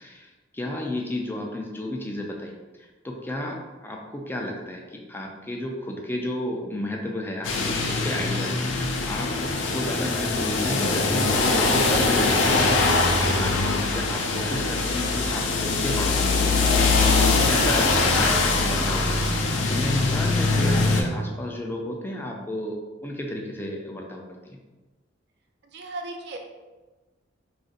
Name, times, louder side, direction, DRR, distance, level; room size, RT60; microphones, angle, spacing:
voice 1, 0.0-2.5 2.8-12.6 13.2-24.6, left 1 dB, 10° left, 0 dB, 0.3 m, -32 dB
sound 1, 7.4-21.0, left 3 dB, 80° left, 0.4 m, -22 dB
voice 2, 25.7-26.4, right 2 dB, 60° right, 3 dB, 0.4 m, -36 dB
2.5 x 2.4 x 3.9 m, 1.2 s
head